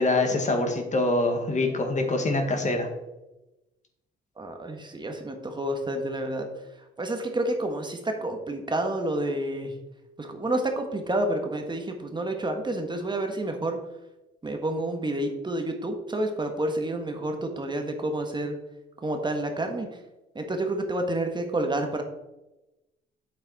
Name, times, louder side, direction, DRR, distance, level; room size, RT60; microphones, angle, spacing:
voice 1, 0.0-2.9, left 2 dB, 35° left, 4 dB, 1.7 m, -24 dB
voice 2, 4.4-6.5 7.0-9.7 10.2-13.8 14.4-18.6 19.0-19.9 20.3-22.0, right 1 dB, 25° right, 4 dB, 1.3 m, -29 dB
8.6 x 7.4 x 4.1 m, 1.0 s
cardioid pair, 90°, 20 cm